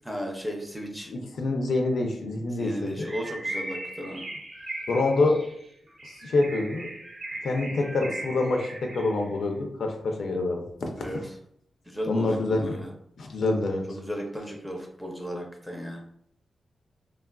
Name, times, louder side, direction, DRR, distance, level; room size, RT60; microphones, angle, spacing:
voice 1, 0.0-1.1 2.5-4.2 11.0-11.2 11.9-12.9 13.9-16.0, equal, ahead, 1 dB, 0.5 m, -35 dB
voice 2, 1.1-3.1 4.9-5.4 6.0-6.9 7.4-10.6 11.0-11.2 12.1-12.8 13.2-13.8, left 2 dB, 70° left, 2 dB, 0.4 m, -26 dB
Bird, 3.0-9.3, right 1 dB, 50° right, 0.7 m, -38 dB
3.2 x 2.3 x 2.2 m, 0.71 s
wide cardioid pair, 150°, 0 cm